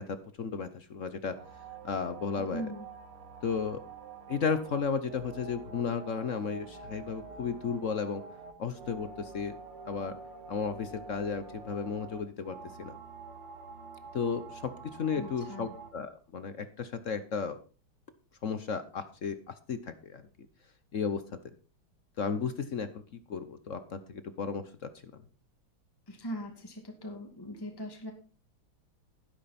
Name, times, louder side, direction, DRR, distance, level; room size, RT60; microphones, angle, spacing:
voice 1, 0.0-1.3 1.8-2.7 3.4-3.8 4.3-8.2 8.6-9.5 9.8-10.2 10.5-12.9 14.1-14.7 15.0-17.6 18.4-19.4 19.7-20.2 20.9-21.2 22.2-22.9 23.3-24.6, left 5 dB, 55° left, 11 dB, 0.9 m, -34 dB
sound 1, 1.3-15.9, right 4 dB, 90° right, 2.8 m, -47 dB
voice 2, 2.4-2.9 15.2-15.7 26.1-28.1, equal, 10° left, 3 dB, 2.2 m, -40 dB
12.0 x 11.0 x 4.2 m, 0.35 s
omnidirectional pair, 2.4 m